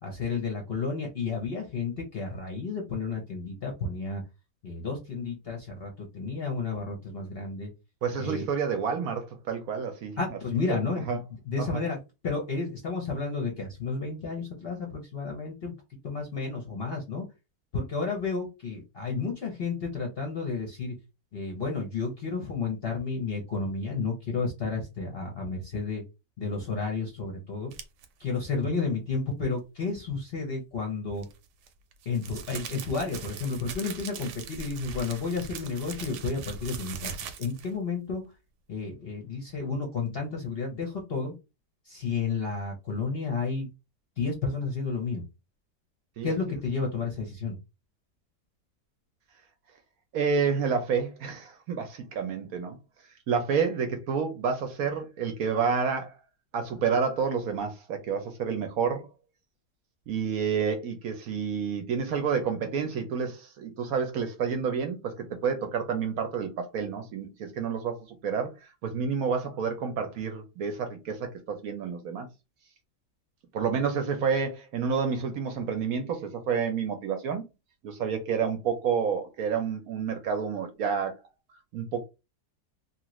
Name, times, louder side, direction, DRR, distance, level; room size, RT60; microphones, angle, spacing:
voice 1, 0.0-4.2 4.6-7.7 8.2-8.5 10.2-11.2 11.5-12.0 12.2-15.7 16.0-17.2 17.7-20.9 21.3-26.0 26.4-27.7 28.2-31.3 32.1-38.2 38.7-41.3 41.9-43.7 44.2-45.2 46.2-47.6, left 4 dB, 50° left, 0.7 m, -31 dB
voice 2, 8.0-10.4 10.7-10.8 11.1-11.2 11.6-11.8 46.2-46.6 50.1-52.8 53.3-56.2 56.5-59.1 60.1-72.3 73.5-77.4 77.8-81.2 81.7-82.0, right 6 dB, 65° right, 1.0 m, -29 dB
sound 1, 27.7-28.1 31.2-37.7, right 6 dB, 90° right, 1.2 m, -41 dB
2.9 x 2.4 x 2.9 m
omnidirectional pair, 1.8 m